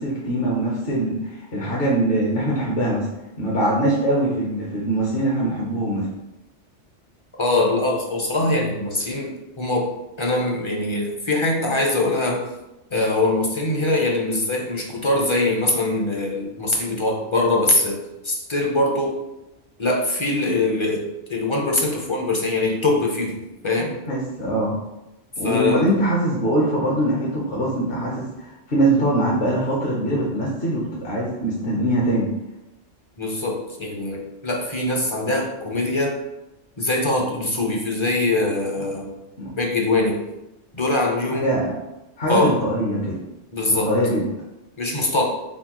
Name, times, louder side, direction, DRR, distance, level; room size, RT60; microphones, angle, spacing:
voice 1, 0.0-3.1 3.4-6.1 23.8-24.7 25.4-32.3 39.4-39.5 41.3-41.8 42.2-43.2 43.7-44.2, right 1 dB, 55° left, -4 dB, 1.0 m, -22 dB
voice 2, 7.4-9.9 10.2-12.5 12.9-19.2 19.8-24.0 25.4-25.9 33.2-36.2 36.8-39.1 39.6-40.2 40.7-41.5 42.3-42.5 43.5-43.9 44.8-45.2, left 2 dB, 35° left, 0 dB, 0.5 m, -22 dB
4.4 x 4.1 x 2.9 m, 0.95 s
omnidirectional pair, 1.2 m